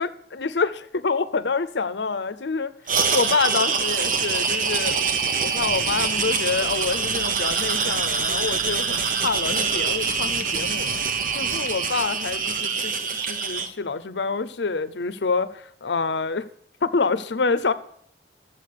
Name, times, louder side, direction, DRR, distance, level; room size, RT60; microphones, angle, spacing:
voice 1, 0.0-2.7 3.1-5.1 5.4-11.0 11.3-12.9 13.3-16.5 16.8-17.7, left 4 dB, 80° left, 14 dB, 0.7 m, -27 dB
sound 1, 2.9-13.7, right 5 dB, 50° right, 1.1 m, -25 dB
sound 2, 5.6-11.4, equal, 90° right, 2.8 m, -41 dB
12.5 x 7.7 x 6.7 m, 0.64 s
head